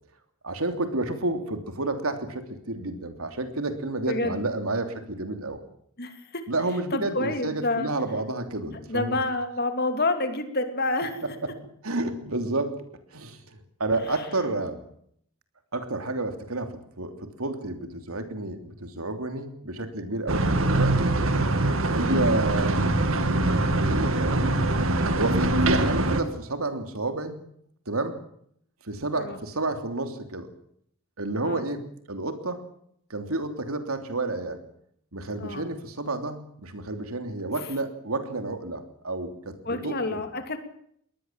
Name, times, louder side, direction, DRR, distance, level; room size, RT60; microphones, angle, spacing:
voice 1, 0.4-5.6 6.5-9.2 11.4-11.5 11.8-12.8 13.1-14.8 15.7-21.2 21.9-23.0 23.8-24.4 25.2-27.4 27.9-28.2 28.8-30.5 31.2-31.8 32.1-32.6 33.1-34.6 35.1-40.2, right 2 dB, 85° right, 7 dB, 3.1 m, -30 dB
voice 2, 4.1-4.4 6.0-6.4 6.9-7.9 8.7-11.2 14.1-14.3 22.1-22.4 29.1-29.4 31.4-31.7 35.4-35.7 39.6-40.6, left 2 dB, 45° left, 7 dB, 2.8 m, -29 dB
sound 1, 20.3-26.2, right 2 dB, 70° right, 2.2 m, -23 dB
22.0 x 18.5 x 7.5 m, 0.67 s
head